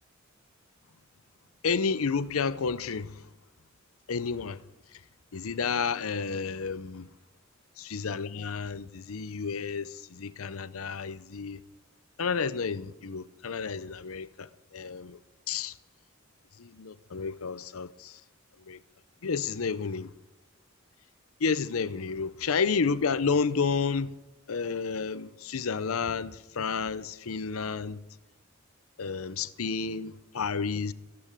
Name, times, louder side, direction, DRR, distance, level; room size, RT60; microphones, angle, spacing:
voice 1, 1.6-3.1 4.1-4.6 5.3-7.1 7.9-11.6 12.2-14.5 14.7-15.2 15.5-15.7 16.6-18.2 18.7-18.8 19.2-20.1 21.4-24.1 24.5-28.0 29.0-30.9, left 5 dB, 85° left, 0.7 m, -31 dB
15.0 x 8.9 x 8.8 m
head